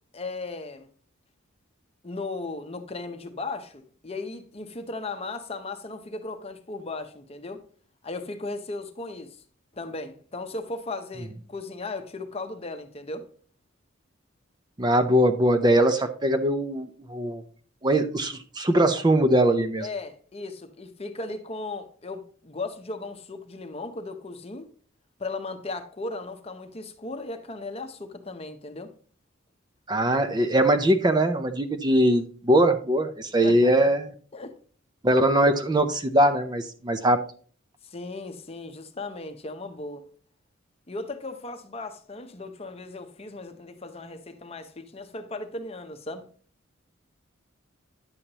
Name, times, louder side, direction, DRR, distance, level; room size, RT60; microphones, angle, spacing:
voice 1, 0.1-0.9 2.0-7.6 8.0-9.4 9.7-13.2 19.8-24.7 25.2-28.9 33.4-33.9 34.3-34.5 37.8-40.0 40.9-46.2, left 3 dB, 30° left, 0.8 m, -36 dB
voice 2, 14.8-17.4 17.8-19.9 29.9-34.1 35.0-37.2, right 1 dB, 20° right, 0.5 m, -21 dB
9.7 x 7.1 x 2.9 m
head